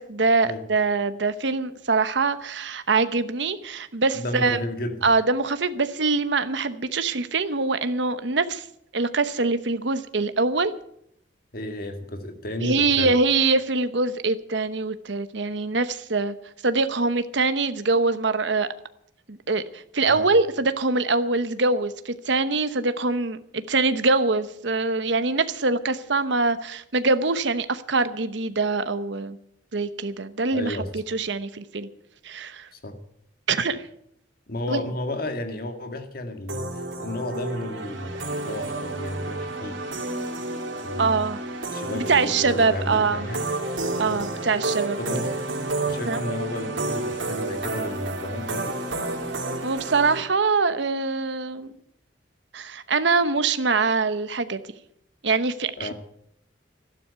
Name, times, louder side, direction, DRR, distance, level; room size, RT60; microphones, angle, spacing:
voice 1, 0.0-4.6 5.0-8.7 8.9-10.7 12.6-16.3 16.6-18.7 19.3-29.4 29.7-31.9 32.2-32.7 33.5-33.9 34.7-34.8 41.0-41.4 41.9-43.3 44.0-45.0 46.1-46.2 49.6-51.7 52.5-54.6 55.2-55.9, right 3 dB, 70° right, 11 dB, 0.9 m, -24 dB
voice 2, 4.1-5.0 11.5-13.2 20.1-20.3 30.5-30.9 32.7-33.0 34.5-36.7 37.0-39.8 40.8-41.2 41.7-43.4 44.1-44.3 45.0-45.3 45.9-48.8 55.8-55.9, left 1 dB, 50° left, 7 dB, 1.9 m, -32 dB
sound 1, 36.5-50.2, right 2 dB, 85° right, 2.9 m, -30 dB
12.5 x 12.0 x 8.2 m, 0.72 s
head